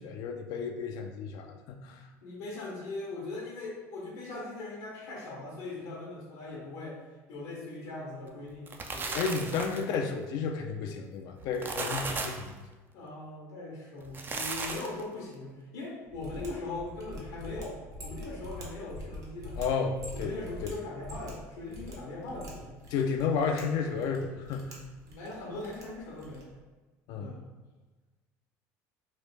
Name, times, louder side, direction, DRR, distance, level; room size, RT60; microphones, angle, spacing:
voice 1, 0.0-2.0 9.1-12.5 19.6-20.4 20.6-20.7 22.9-24.8 27.1-27.3, left 5 dB, 65° left, 3 dB, 0.4 m, -32 dB
voice 2, 2.2-7.0 7.3-9.2 12.9-19.6 20.1-22.8 23.2-23.3 25.0-26.5 27.2-27.4, left 2 dB, 85° left, -3 dB, 0.9 m, -40 dB
sound 1, 8.5-9.9 11.4-12.5 14.0-15.0, right 3 dB, 25° right, 0.4 m, -35 dB
Mechanisms, 16.1-26.6, equal, 45° right, 1.0 m, -45 dB
3.2 x 2.5 x 3.3 m, 1.3 s
supercardioid pair, 100°, 8 cm